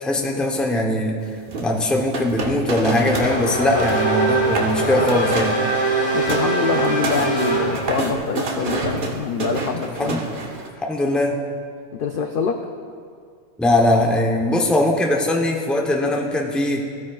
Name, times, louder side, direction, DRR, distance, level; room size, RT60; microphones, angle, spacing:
voice 1, 0.0-1.1 1.6-5.5 9.9-10.2 10.9-11.4 13.6-16.8, left 1 dB, ahead, 1 dB, 0.5 m, -20 dB
sound 1, 1.5-3.3 3.6-4.1 4.4-4.8 5.1-5.6 6.0-10.7, right 3 dB, 45° right, 1.0 m, -28 dB
Race car auto racing / Accelerating revving vroom, 2.7-8.2, right 3 dB, 30° left, 2.2 m, -22 dB
voice 2, 6.1-10.1 12.0-12.6, left 6 dB, 70° left, 5 dB, 0.5 m, -25 dB
15.0 x 9.3 x 2.3 m, 2.2 s
omnidirectional pair, 1.4 m